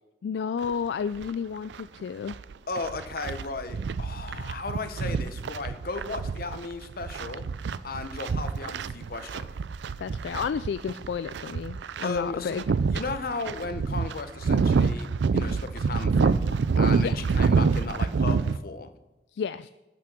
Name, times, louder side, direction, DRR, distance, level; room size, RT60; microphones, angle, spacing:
voice 1, 0.2-2.4 10.0-12.6 17.0-17.2 19.3-19.7, left 6 dB, 70° left, 14 dB, 0.3 m, -31 dB
sound 1, 0.6-0.7 1.2-1.3 1.7-18.6, right 5 dB, 75° right, 0.4 m, -27 dB
voice 2, 2.7-7.4 7.8-9.5 12.0-12.6 12.9-18.9, left 3 dB, 55° left, 9 dB, 0.9 m, -35 dB
18.0 x 6.1 x 6.0 m, 1.0 s
head